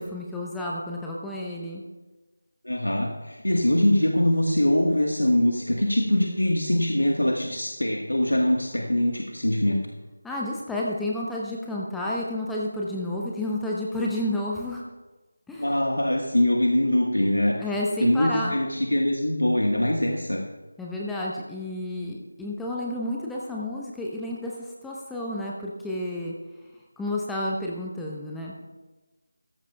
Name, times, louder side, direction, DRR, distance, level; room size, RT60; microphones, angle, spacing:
voice 1, 0.0-1.8 10.2-14.8 15.5-15.7 17.6-18.6 20.8-26.3 27.0-28.5, left 1 dB, 5° left, -4 dB, 0.7 m, -31 dB
voice 2, 2.6-9.8 15.6-17.6 18.0-20.4, left 1 dB, 85° left, 1 dB, 1.4 m, -23 dB
15.5 x 14.0 x 2.3 m, 1.2 s
figure-of-eight pair, 165°, 0 cm